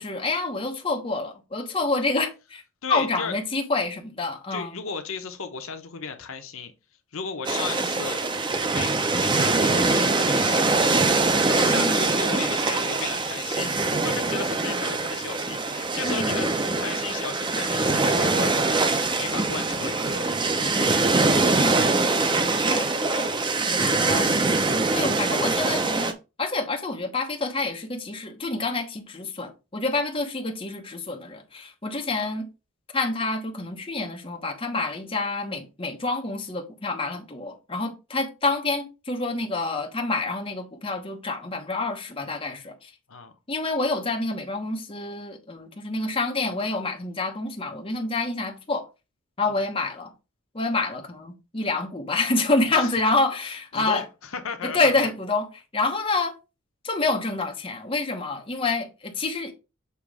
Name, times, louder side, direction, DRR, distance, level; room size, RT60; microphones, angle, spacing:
voice 1, 0.0-2.6 2.9-4.8 11.7-12.1 16.0-16.4 21.5-21.9 22.7-23.3 23.8-24.4 24.7-32.5 32.9-42.9 43.5-48.9 49.4-50.1 50.5-54.0 54.6-56.3 56.8-59.5, left 3 dB, 25° left, 1.0 m, -27 dB
voice 2, 2.8-3.3 4.5-6.7 7.1-8.2 8.7-11.0 11.5-21.1 43.1-43.3 52.7-53.0 53.4-55.0, left 5 dB, 65° left, 0.8 m, -35 dB
sound 1, 7.4-26.1, right 3 dB, 20° right, 0.5 m, -23 dB
6.9 x 3.0 x 4.8 m
head